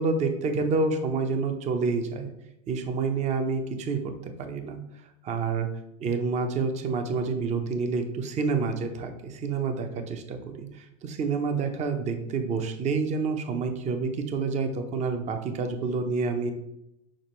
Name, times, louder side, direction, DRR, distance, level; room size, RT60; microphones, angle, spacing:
voice 1, 0.0-2.3 2.7-4.8 5.2-5.7 6.0-16.5, right 4 dB, 35° right, 7 dB, 0.9 m, -28 dB
6.4 x 5.0 x 3.1 m, 0.85 s
hypercardioid pair, 100°, 21 cm